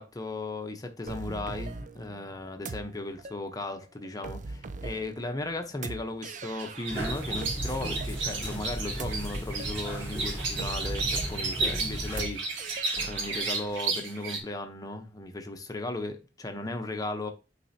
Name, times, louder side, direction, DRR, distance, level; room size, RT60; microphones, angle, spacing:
voice 1, 0.0-12.4 13.0-17.3, left 2 dB, 20° left, 0.9 m, -36 dB
sound 1, 1.1-13.8, right 3 dB, 45° right, 0.5 m, -41 dB
sound 2, 6.6-14.4, right 3 dB, 90° right, 1.9 m, -33 dB
sound 3, 6.9-12.2, equal, 15° right, 2.8 m, -36 dB
9.1 x 4.1 x 2.8 m
head